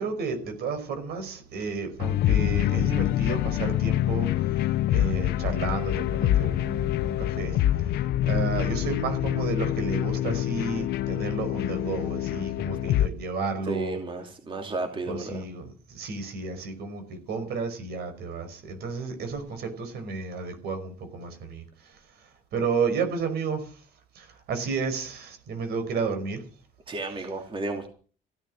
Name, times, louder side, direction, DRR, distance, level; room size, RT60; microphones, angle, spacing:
voice 1, 0.0-14.0 15.1-23.8 24.2-26.4, right 4 dB, 70° right, 7 dB, 5.3 m, -32 dB
sound 1, 2.0-13.1, left 13 dB, 75° left, 0.8 m, -26 dB
voice 2, 13.7-15.4 26.9-27.9, right 2 dB, 30° right, 5 dB, 2.7 m, -33 dB
16.0 x 11.0 x 6.4 m, 0.40 s
cardioid pair, 110°, 17 cm